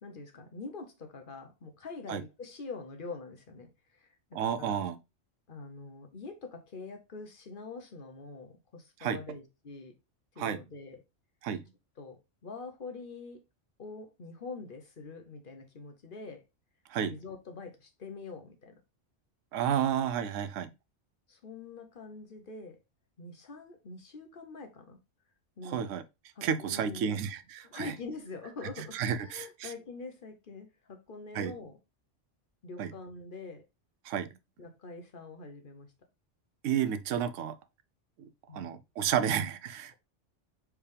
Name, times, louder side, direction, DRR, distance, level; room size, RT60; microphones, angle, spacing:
voice 1, 0.0-4.9 5.5-9.9 10.3-11.0 12.0-13.4 13.8-16.4 17.0-18.8 21.3-22.8 23.2-25.0 25.6-25.9 26.4-27.3 27.6-31.8 32.6-33.6 34.6-35.9 38.5-38.8, left 3 dB, 50° left, 0.9 m, -45 dB
voice 2, 4.3-5.0 9.0-9.2 10.4-10.6 11.4-11.6 16.9-17.1 19.5-20.7 25.6-26.0 26.4-27.9 28.8-29.7 31.3-31.5 32.8-32.9 34.0-34.3 36.6-37.6 38.2-39.9, right 8 dB, 90° right, 0.9 m, -31 dB
4.7 x 3.4 x 3.3 m
omnidirectional pair, 1.2 m